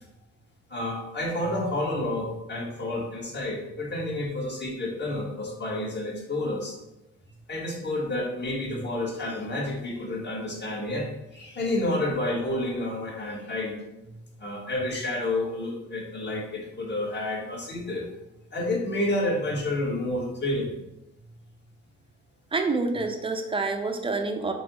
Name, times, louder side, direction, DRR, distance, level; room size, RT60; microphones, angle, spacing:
voice 1, 0.7-6.7 7.5-13.7 14.4-18.1 18.5-20.8, left 1 dB, 35° left, -2 dB, 1.5 m, -30 dB
voice 2, 22.5-24.5, right 3 dB, 20° right, 5 dB, 0.6 m, -27 dB
4.6 x 2.8 x 4.1 m, 0.94 s
cardioid pair, 90°, 30 cm